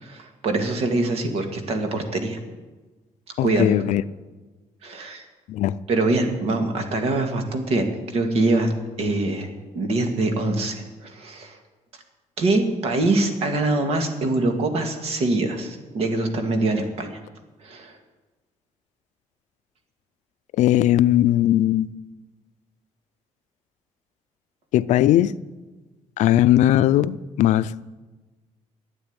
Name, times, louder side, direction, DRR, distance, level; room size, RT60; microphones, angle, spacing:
voice 1, 0.0-2.4 3.4-3.7 4.8-5.2 5.9-8.7 9.0-9.5 9.8-11.6 12.4-17.2 17.6-18.0, right 2 dB, 55° right, 2.0 m, -24 dB
voice 2, 3.4-4.0 5.5-5.8 20.6-21.9 24.7-25.4 26.2-27.9, left 13 dB, 80° left, 0.5 m, -19 dB
12.5 x 9.1 x 9.6 m
cardioid pair, 180°, 12 cm